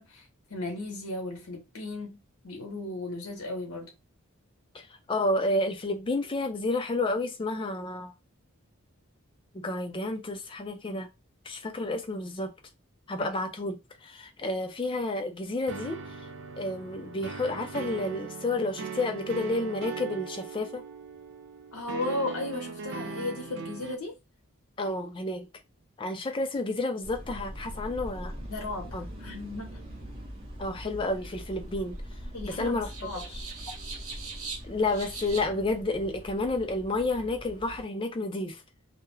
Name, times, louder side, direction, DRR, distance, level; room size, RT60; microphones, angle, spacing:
voice 1, 0.0-3.9 13.2-13.3 21.7-24.2 28.5-29.8 32.3-33.2, left 2 dB, 85° left, 0.7 m, -36 dB
voice 2, 4.7-8.1 9.5-11.1 11.4-12.5 13.1-16.0 16.6-20.8 24.8-25.5 26.0-28.3 28.9-29.1 30.6-32.0 32.4-32.9 34.6-38.6, left 2 dB, 25° left, 0.4 m, -30 dB
sound 1, 15.7-24.0, right 5 dB, 55° right, 0.3 m, -39 dB
sound 2, 27.0-37.8, equal, 25° right, 0.6 m, -43 dB
sound 3, 30.1-35.4, right 3 dB, 80° right, 0.7 m, -42 dB
2.3 x 2.0 x 3.0 m
head